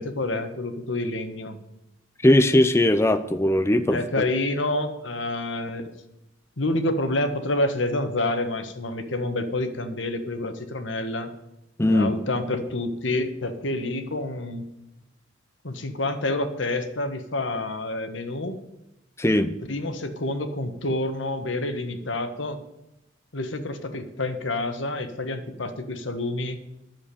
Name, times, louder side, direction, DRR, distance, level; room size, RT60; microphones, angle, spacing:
voice 1, 0.0-1.6 3.9-5.9 6.6-11.3 11.9-14.7 15.6-18.6 19.7-22.6 23.3-26.6, left 2 dB, 80° left, 8 dB, 1.5 m, -28 dB
voice 2, 2.2-4.2 11.8-12.1 19.2-19.5, left 1 dB, 15° left, 10 dB, 0.5 m, -19 dB
11.0 x 7.3 x 8.6 m, 0.92 s
head